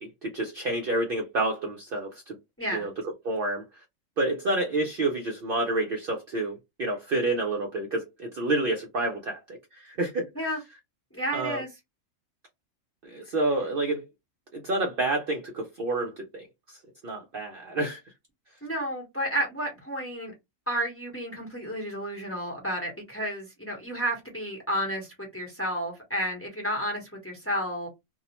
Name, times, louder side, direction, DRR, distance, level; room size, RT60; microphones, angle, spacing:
voice 1, 0.2-2.4 2.7-2.9 3.2-3.6 4.2-10.3 11.3-11.6 13.0-14.0 14.5-16.8 17.0-18.0, right 2 dB, 60° right, 0.6 m, -29 dB
voice 2, 11.1-11.7 18.6-20.3 20.7-27.9, equal, 15° left, 0.7 m, -31 dB
2.4 x 2.0 x 2.8 m
omnidirectional pair, 1.4 m